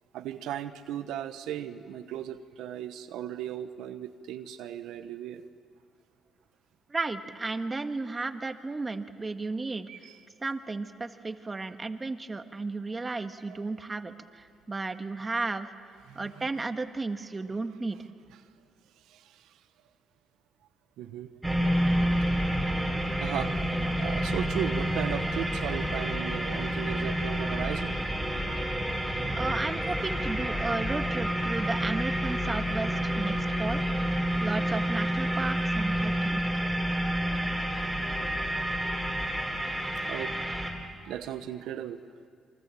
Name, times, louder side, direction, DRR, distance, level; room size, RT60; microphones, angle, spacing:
voice 1, 0.1-5.4 9.9-10.2 13.5-13.6 16.1-16.5 19.1-19.5 21.0-21.3 23.2-23.5 24.0-28.0 36.7-36.8 40.0-40.4 41.0-42.0, right 10 dB, 90° right, 8 dB, 1.0 m, -37 dB
voice 2, 6.9-9.9 10.4-15.7 16.1-18.0 29.4-33.8 34.4-36.4, right 3 dB, 25° right, 8 dB, 1.5 m, -34 dB
sound 1, 21.4-40.7, equal, ahead, 4.6 m, -29 dB
28.5 x 24.0 x 7.6 m, 2.3 s
cardioid pair, 90°, 0 cm